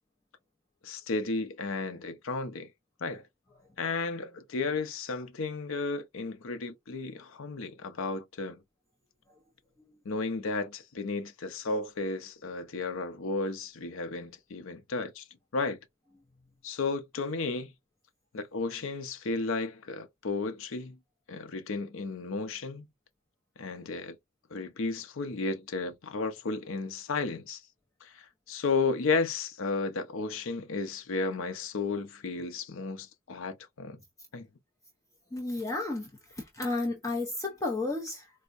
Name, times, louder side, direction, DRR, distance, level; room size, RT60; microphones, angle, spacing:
voice 1, 0.8-2.7 3.0-3.2 3.8-8.6 10.1-15.2 15.5-15.8 16.6-17.7 18.3-21.0 21.3-22.9 23.6-24.2 24.5-27.6 28.0-34.0 34.3-34.5, left 3 dB, 65° left, 0.5 m, -33 dB
voice 2, 35.3-36.1 36.4-38.3, left 2 dB, 15° left, 0.5 m, -32 dB
4.3 x 2.1 x 2.4 m
head